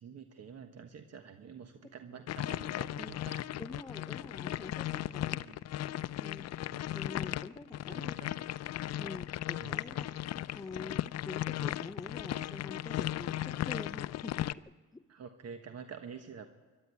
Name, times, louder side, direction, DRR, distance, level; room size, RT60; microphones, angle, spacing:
voice 1, 0.0-3.5 5.4-5.6 6.7-6.9 7.9-8.4 9.6-9.8 15.1-16.5, right 6 dB, 55° right, 7 dB, 1.3 m, -48 dB
sound 1, 2.3-14.5, left 13 dB, 55° left, 0.5 m, -36 dB
voice 2, 3.6-5.4 6.2-6.5 6.9-8.1 9.0-10.2 10.5-14.3 14.9-15.0, left 3 dB, 15° left, 10 dB, 0.7 m, -46 dB
24.5 x 12.0 x 9.4 m, 1.4 s
cardioid pair, 90°, 30 cm